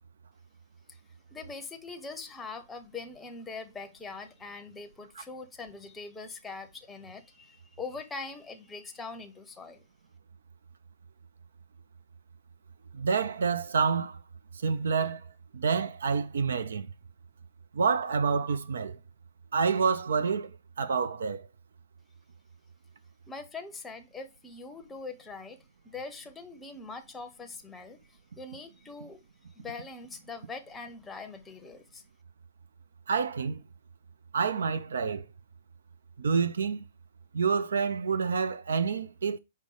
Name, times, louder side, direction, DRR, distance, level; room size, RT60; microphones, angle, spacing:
voice 1, 1.3-9.8 23.3-29.2 29.5-32.0, left 4 dB, 10° left, 0.7 m, -42 dB
voice 2, 12.9-14.2 14.5-15.2 15.5-16.9 17.7-19.0 19.5-20.5 20.8-21.5 33.1-33.6 34.3-35.3 36.2-36.8 37.3-39.4, right 5 dB, 75° right, 0.5 m, -28 dB
5.2 x 2.1 x 4.7 m
hypercardioid pair, 120°, 0 cm